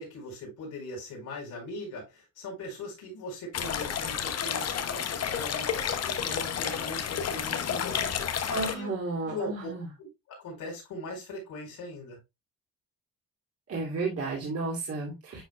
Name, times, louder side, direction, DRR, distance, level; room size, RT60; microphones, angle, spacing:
voice 1, 0.0-8.1 8.7-9.7 10.0-12.2, left 2 dB, 85° left, 4.5 m, -40 dB
sound 1, 3.5-8.7, left 8 dB, 55° left, 1.0 m, -31 dB
voice 2, 8.5-9.9 13.7-15.4, right 3 dB, 50° right, 2.7 m, -32 dB
10.5 x 4.4 x 2.2 m
cardioid pair, 90°, 30 cm